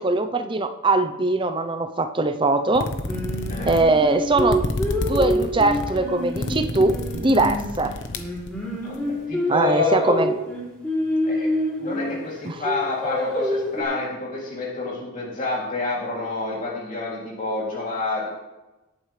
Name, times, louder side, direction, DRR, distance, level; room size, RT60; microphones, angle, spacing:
voice 1, 0.0-2.9 3.7-4.7 5.0-7.9 9.5-10.3 12.5-12.6, right 2 dB, 20° right, 8 dB, 0.6 m, -21 dB
sound 1, 2.7-9.0, left 1 dB, 55° left, 1.0 m, -30 dB
Singing, 3.1-7.8 8.1-12.2 12.6-13.8, left 1 dB, 5° left, 3.2 m, -26 dB
voice 2, 9.3-10.1 11.3-11.5 11.8-18.3, left 3 dB, 35° left, -5 dB, 2.9 m, -28 dB
18.0 x 9.0 x 3.3 m, 1.0 s
head